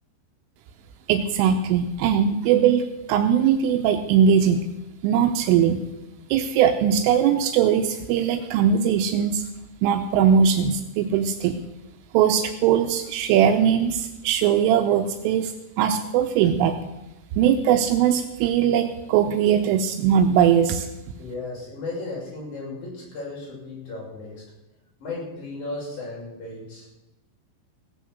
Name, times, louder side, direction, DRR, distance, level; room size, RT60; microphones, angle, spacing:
voice 1, 1.1-4.6 5.0-5.8 6.3-9.5 9.8-11.6 12.1-16.8 17.4-20.9, right 8 dB, 85° right, 6 dB, 3.3 m, -20 dB
voice 2, 21.2-24.4 25.0-26.9, left 3 dB, 40° left, -4 dB, 7.1 m, -35 dB
17.0 x 8.2 x 7.9 m, 0.95 s
omnidirectional pair, 5.7 m